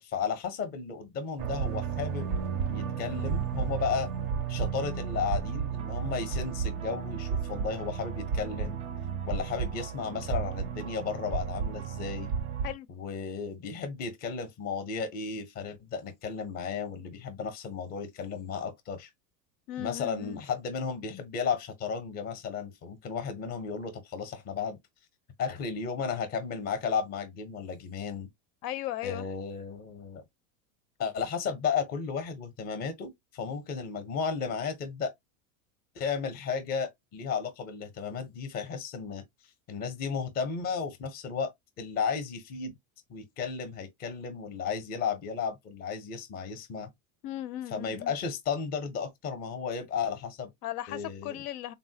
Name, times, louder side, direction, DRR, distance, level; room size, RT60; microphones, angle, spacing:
voice 1, 0.0-2.3 2.7-4.1 4.5-8.8 9.2-12.3 12.9-19.1 19.8-24.8 25.4-28.3 29.0-30.2 31.0-35.1 35.9-39.2 39.7-42.7 43.1-46.9 47.7-50.5 50.9-51.4, left 6 dB, 20° left, 0.5 m, -34 dB
sound 1, 1.4-12.7, right 7 dB, 35° right, 0.4 m, -33 dB
voice 2, 19.7-20.4 28.6-29.3 47.2-48.1 50.6-51.7, left 13 dB, 80° left, 0.5 m, -37 dB
3.4 x 2.1 x 2.6 m
supercardioid pair, 145°, 45 cm